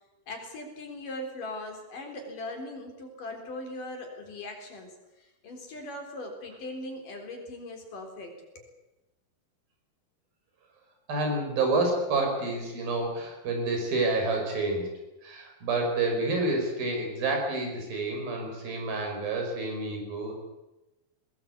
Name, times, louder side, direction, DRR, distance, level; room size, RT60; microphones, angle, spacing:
voice 1, 0.3-4.9 5.2-8.7, left 1 dB, 65° left, 3 dB, 5.5 m, -40 dB
voice 2, 11.1-14.9 15.2-20.3, right 2 dB, 80° right, 2 dB, 7.4 m, -29 dB
21.5 x 20.0 x 8.3 m, 1.0 s
omnidirectional pair, 4.1 m